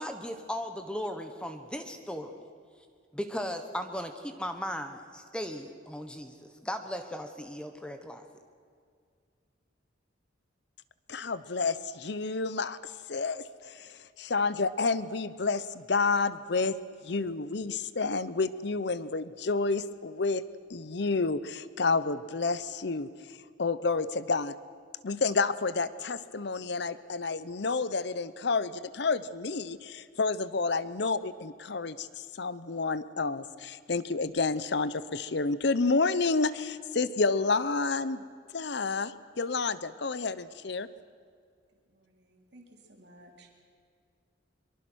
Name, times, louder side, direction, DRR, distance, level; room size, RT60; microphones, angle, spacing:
voice 1, 0.0-2.3 3.1-8.2, equal, 5° left, 6 dB, 1.1 m, -37 dB
voice 2, 11.1-16.7 17.0-20.4 20.7-24.5 25.0-38.2 38.5-40.9, left 4 dB, 60° left, 16 dB, 0.8 m, -30 dB
voice 3, 41.7-43.6, right 1 dB, 60° right, 1 dB, 3.5 m, -57 dB
24.0 x 23.5 x 6.3 m, 2.2 s
head